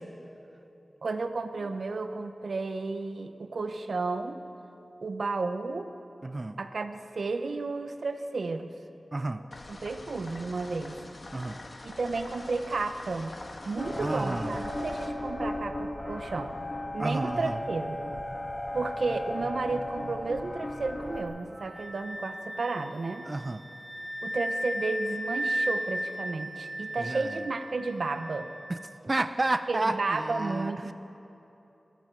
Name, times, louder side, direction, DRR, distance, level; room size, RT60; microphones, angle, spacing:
voice 1, 1.0-4.4 5.0-5.9 6.6-8.7 9.8-11.0 11.8-13.3 13.7-16.5 16.9-18.0 18.7-23.3 24.2-28.5 29.7-30.9, right 3 dB, 80° right, 8 dB, 0.8 m, -32 dB
voice 2, 6.2-6.6 9.1-9.4 11.3-11.6 14.0-14.6 17.0-17.6 23.2-23.6 27.0-27.4 28.7-30.9, right 2 dB, 40° right, 10 dB, 0.5 m, -31 dB
sound 1, 9.5-15.1, left 2 dB, 55° left, 1.4 m, -45 dB
sound 2, 13.8-21.2, left 1 dB, 25° left, 1.9 m, -35 dB
Wind instrument woodwind instrument, 21.5-29.0, equal, 25° right, 2.8 m, -35 dB
22.0 x 13.5 x 4.6 m, 3.0 s
wide cardioid pair, 50°, 0 cm